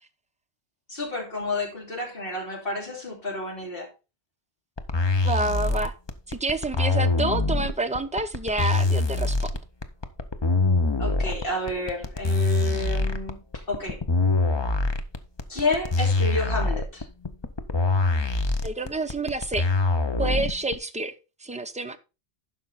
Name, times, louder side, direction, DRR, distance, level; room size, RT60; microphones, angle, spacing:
voice 1, 0.9-3.9 11.0-14.0 15.5-17.1, left 2 dB, 55° left, 3.2 m, -30 dB
sound 1, 4.8-20.7, left 3 dB, 30° left, 0.7 m, -24 dB
voice 2, 5.2-5.9 6.3-9.5 18.6-19.7 20.2-21.1 21.4-22.0, right 2 dB, 10° right, 0.5 m, -28 dB
11.5 x 5.4 x 4.0 m
omnidirectional pair, 1.1 m